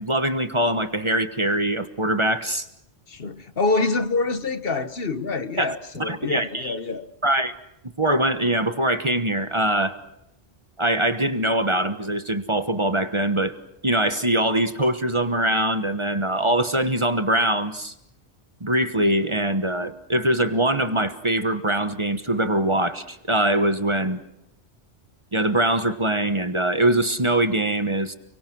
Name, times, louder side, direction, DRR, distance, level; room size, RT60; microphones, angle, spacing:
voice 1, 0.0-2.7 5.6-5.7 6.0-6.8 7.2-7.5 8.0-10.0 10.8-13.5 13.8-17.9 18.6-24.2 25.3-28.1, right 1 dB, 25° right, 10 dB, 1.3 m, -23 dB
voice 2, 3.1-7.1, left 3 dB, 60° left, 11 dB, 1.3 m, -26 dB
29.5 x 23.5 x 6.2 m, 0.84 s
omnidirectional pair, 1.1 m